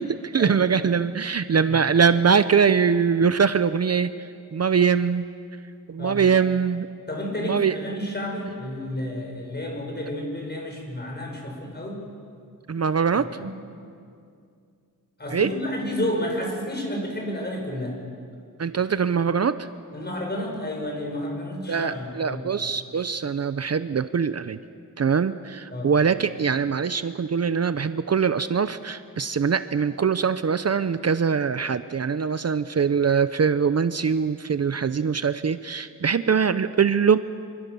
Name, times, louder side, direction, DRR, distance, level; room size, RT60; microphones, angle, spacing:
voice 1, 0.0-5.3 5.9-6.9 7.4-7.8 12.7-13.3 15.3-15.5 18.6-19.7 21.7-24.6 25.0-37.2, right 6 dB, 45° right, 12 dB, 0.7 m, -22 dB
voice 2, 7.1-12.0 13.2-13.5 15.2-18.0 19.9-22.5 25.7-25.9, left 1 dB, 30° left, 0 dB, 6.5 m, -31 dB
26.5 x 25.5 x 7.0 m, 2.4 s
wide cardioid pair, 95°, 34 cm